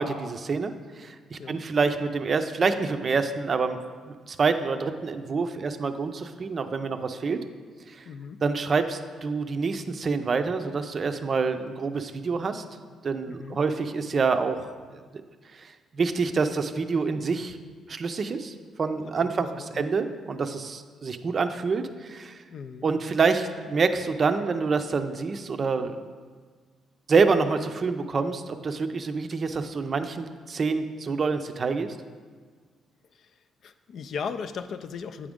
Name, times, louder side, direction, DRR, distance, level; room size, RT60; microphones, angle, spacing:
voice 1, 0.0-3.8 4.3-7.4 7.9-8.0 8.4-12.6 13.0-14.7 15.5-17.6 17.9-22.4 22.8-26.0 27.1-32.0, right 4 dB, 45° right, 8 dB, 0.4 m, -27 dB
voice 2, 8.1-8.4 13.3-13.6 19.2-19.9 22.5-22.9 33.1-33.4 33.6-35.3, left 6 dB, 65° left, 10 dB, 0.4 m, -37 dB
8.4 x 5.0 x 3.6 m, 1.5 s
cardioid pair, 90°, 0 cm